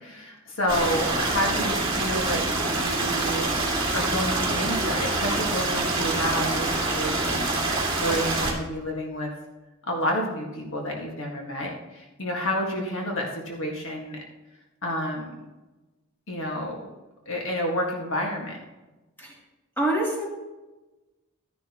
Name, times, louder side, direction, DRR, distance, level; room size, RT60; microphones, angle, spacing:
voice 1, 0.0-9.3 9.9-14.2 14.8-15.3 16.3-16.8 17.3-18.6, equal, 65° left, -1 dB, 1.7 m, -30 dB
Stream, 0.7-8.5, right 2 dB, 25° right, 2.1 m, -26 dB
voice 2, 19.8-20.3, right 1 dB, 10° left, -5 dB, 2.9 m, -25 dB
12.5 x 10.5 x 3.0 m, 1.1 s
head